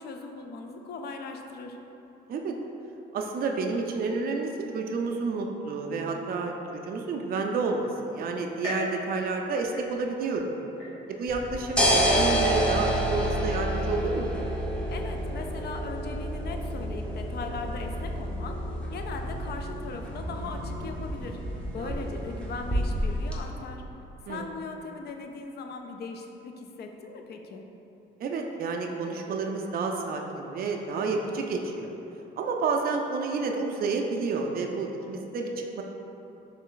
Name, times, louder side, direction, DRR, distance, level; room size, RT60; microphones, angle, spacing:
voice 1, 0.0-1.8 14.9-18.6 18.9-21.4 21.7-23.8 24.3-27.6, left 4 dB, 55° left, 4 dB, 0.4 m, -39 dB
voice 2, 3.1-10.5 11.1-14.3 21.8-22.0 24.3-24.5 28.2-31.9 32.4-35.8, right 4 dB, 50° right, 2 dB, 0.4 m, -30 dB
sound 1, 8.6-10.3 10.8-11.4 11.9-12.0 12.9-13.0, left 1 dB, 90° left, 1.3 m, -39 dB
sound 2, 11.3-23.4, equal, 5° left, 0.6 m, -29 dB
sound 3, 18.3-23.7, equal, 30° left, 1.3 m, -41 dB
3.3 x 3.2 x 3.8 m, 3.0 s
cardioid pair, 90°, 20 cm